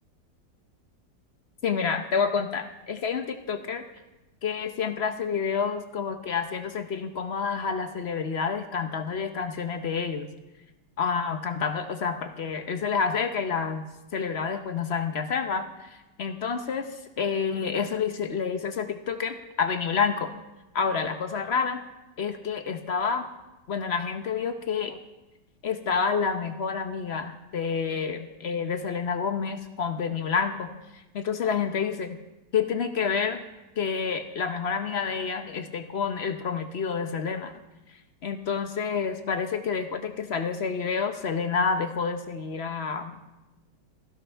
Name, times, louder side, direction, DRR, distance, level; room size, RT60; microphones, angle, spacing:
voice 1, 1.6-3.8 4.4-10.3 11.0-13.9 14.1-15.9 16.2-16.9 17.2-20.3 20.7-21.8 22.2-23.3 23.7-25.0 25.6-30.7 31.1-32.2 32.5-33.4 33.8-37.5 38.2-43.2, left 6 dB, 50° left, 8 dB, 0.8 m, -28 dB
28.0 x 11.5 x 3.4 m, 1.0 s
omnidirectional pair, 1.9 m